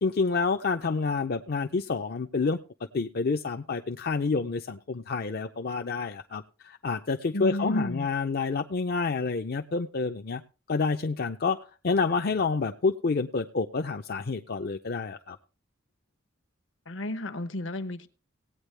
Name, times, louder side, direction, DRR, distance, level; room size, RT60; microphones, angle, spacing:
voice 1, 0.0-2.6 2.9-10.4 10.7-11.6 11.8-15.4, left 4 dB, 50° left, 6 dB, 0.5 m, -28 dB
voice 2, 7.3-8.1 16.9-18.1, left 1 dB, 70° left, 9 dB, 1.0 m, -31 dB
17.5 x 8.9 x 3.3 m, 0.35 s
head